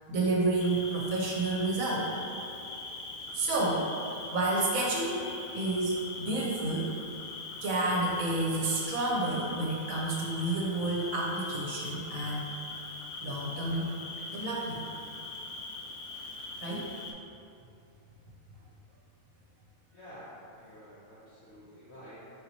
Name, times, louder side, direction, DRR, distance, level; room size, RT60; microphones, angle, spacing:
voice 1, 0.1-2.1 3.3-5.3 5.5-7.0 7.6-12.4 13.2-13.9 14.3-14.8 16.6-16.9, right 2 dB, 70° right, -3 dB, 1.1 m, -30 dB
Cricket, 0.6-17.1, left 3 dB, 85° left, 1.1 m, -41 dB
voice 2, 19.9-22.2, equal, 55° left, -11 dB, 1.0 m, -50 dB
4.1 x 2.9 x 3.9 m, 2.5 s
omnidirectional pair, 1.5 m